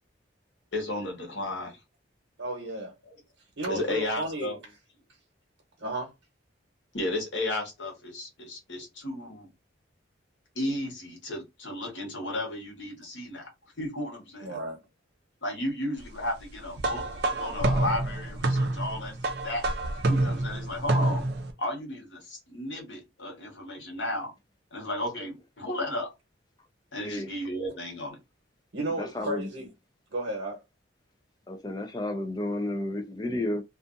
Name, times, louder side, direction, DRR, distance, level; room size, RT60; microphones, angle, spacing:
voice 1, 0.7-1.8 3.7-4.6 6.9-9.5 10.5-13.4 13.8-14.6 15.4-17.0 17.3-19.2 19.4-19.6 20.1-21.2 21.6-24.3 24.7-26.1 26.9-28.2, left 1 dB, 75° left, 1.2 m, -33 dB
voice 2, 2.4-2.9 3.6-4.5 5.8-6.1 14.4-14.8 28.7-29.7 30.1-30.6, right 1 dB, 80° right, 1.0 m, -33 dB
sound 1, 16.8-21.5, right 2 dB, 60° right, 0.5 m, -27 dB
voice 3, 27.0-27.3 28.9-29.5 31.5-33.6, left 1 dB, 20° left, 0.4 m, -32 dB
2.5 x 2.4 x 2.5 m
head